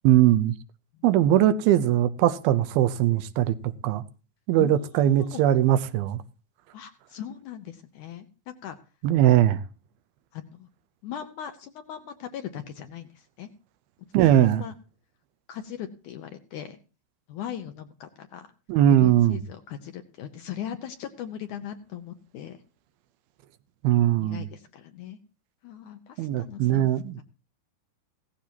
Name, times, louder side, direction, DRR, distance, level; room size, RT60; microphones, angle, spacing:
voice 1, 0.0-0.5 1.0-3.6 3.8-4.0 4.5-6.2 9.0-9.6 14.1-14.6 18.7-19.4 23.8-24.4 26.2-27.2, right 12 dB, 85° right, 2.6 m, -20 dB
voice 2, 4.5-5.4 6.7-8.8 10.3-10.7 11.0-13.5 14.1-14.7 15.5-16.8 17.3-18.5 19.0-22.6 24.1-25.2 25.6-26.9, left 10 dB, 70° left, 2.0 m, -39 dB
16.5 x 14.5 x 2.8 m
omnidirectional pair, 4.3 m